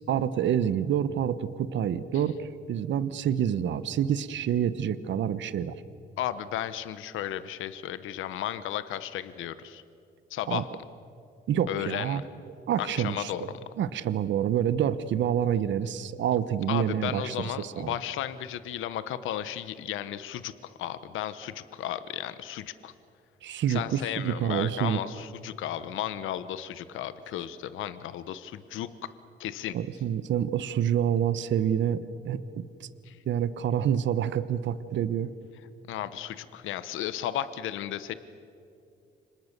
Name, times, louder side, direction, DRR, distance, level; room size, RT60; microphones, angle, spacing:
voice 1, 0.1-5.7 10.5-10.6 11.5-12.2 12.7-13.5 13.8-17.9 23.4-25.0 29.7-32.9 33.3-35.3, right 9 dB, 70° right, 14 dB, 1.0 m, -27 dB
voice 2, 6.2-9.8 10.3-10.7 11.7-12.2 12.8-13.6 16.7-22.9 23.7-28.9 29.4-29.7 33.0-33.2 35.9-38.1, left 11 dB, 85° left, 13 dB, 1.0 m, -34 dB
30.0 x 26.0 x 6.7 m, 2.5 s
cardioid pair, 90°, 20 cm